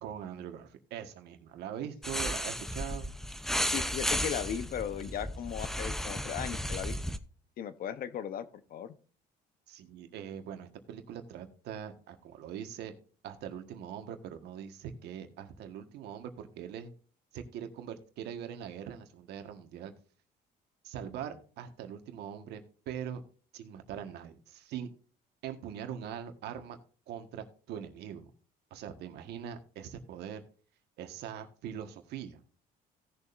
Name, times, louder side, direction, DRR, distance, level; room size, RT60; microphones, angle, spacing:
voice 1, 0.0-3.1 9.7-13.0 13.2-16.9 17.3-19.9 20.8-23.2 23.5-24.9 25.4-26.8 27.1-28.3 28.7-30.4 31.0-32.4, right 9 dB, 80° right, 7 dB, 1.5 m, -42 dB
sound 1, 2.0-7.2, equal, ahead, 0.6 m, -34 dB
voice 2, 3.6-7.0 7.6-8.4 8.7-8.9, left 9 dB, 60° left, 13 dB, 0.9 m, -37 dB
17.5 x 7.0 x 2.6 m, 0.40 s
cardioid pair, 110°, 17 cm